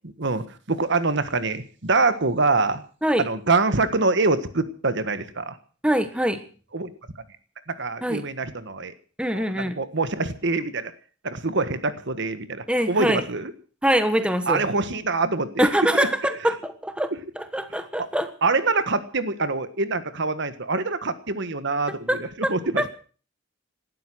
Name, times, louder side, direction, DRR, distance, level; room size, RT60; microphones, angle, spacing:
voice 1, 0.0-2.8 3.2-5.6 6.7-6.9 7.7-8.9 9.3-10.9 11.2-13.5 14.5-15.7 18.4-22.2 22.5-22.8, right 3 dB, 65° right, 11 dB, 1.5 m, -25 dB
voice 2, 5.8-6.4 8.0-8.2 9.2-9.7 12.7-13.2 13.8-14.6 15.6-18.3 22.1-22.2 22.4-22.9, equal, 5° right, 9 dB, 1.4 m, -24 dB
18.5 x 12.5 x 6.3 m, 0.42 s
head